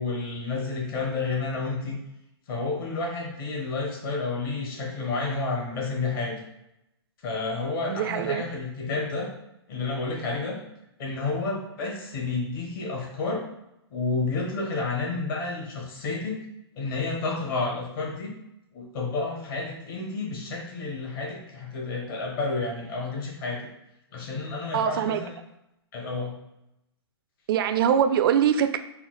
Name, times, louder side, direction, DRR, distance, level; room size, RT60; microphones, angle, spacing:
voice 1, 0.0-2.0 2.5-6.4 7.2-9.3 9.7-10.6 11.0-13.4 13.9-16.4 16.8-18.3 18.7-23.7 24.1-25.3 25.9-26.4, left 3 dB, 55° left, -1 dB, 1.4 m, -30 dB
voice 2, 7.9-8.5 24.7-25.2 27.5-28.8, right 9 dB, 55° right, 10 dB, 0.4 m, -23 dB
4.3 x 2.0 x 4.0 m, 0.85 s
hypercardioid pair, 125°, 14 cm